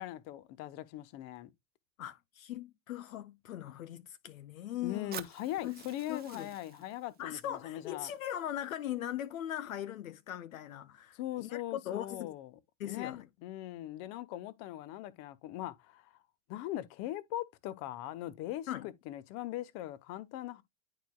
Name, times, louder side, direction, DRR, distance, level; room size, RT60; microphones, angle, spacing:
voice 1, 0.0-1.5 4.8-8.1 11.1-12.5 12.9-16.1 16.5-20.6, left 14 dB, 40° left, 0.9 m, -40 dB
voice 2, 2.0-5.2 5.6-5.8 6.1-6.5 7.2-12.3 12.8-13.3 18.7-18.9, left 11 dB, 70° left, 0.6 m, -40 dB
Fire, 5.1-9.1, right 9 dB, 20° right, 0.9 m, -51 dB
10.0 x 4.8 x 2.3 m
figure-of-eight pair, 90°, 42 cm